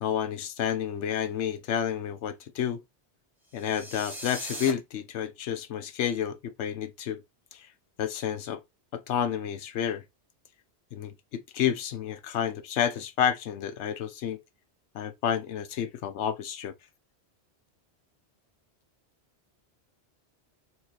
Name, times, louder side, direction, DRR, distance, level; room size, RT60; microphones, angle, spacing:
voice 1, 0.0-2.8 3.5-7.2 7.5-7.7 8.0-8.6 8.9-10.0 10.9-14.4 14.9-16.7, left 9 dB, 90° left, 1.0 m, -30 dB
sound 1, 3.5-4.7, right 1 dB, ahead, 1.2 m, -39 dB
4.4 x 2.9 x 2.9 m
omnidirectional pair, 1.1 m